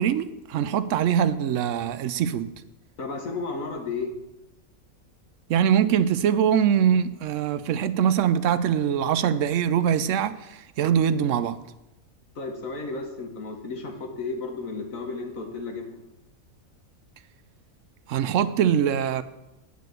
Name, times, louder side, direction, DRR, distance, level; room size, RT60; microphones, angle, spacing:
voice 1, 0.0-2.5 5.5-11.6 18.1-19.2, right 8 dB, 70° right, 0.9 m, -23 dB
voice 2, 3.0-4.1 12.3-16.0, left 3 dB, 70° left, 1.8 m, -33 dB
9.5 x 5.2 x 7.8 m
omnidirectional pair, 1.5 m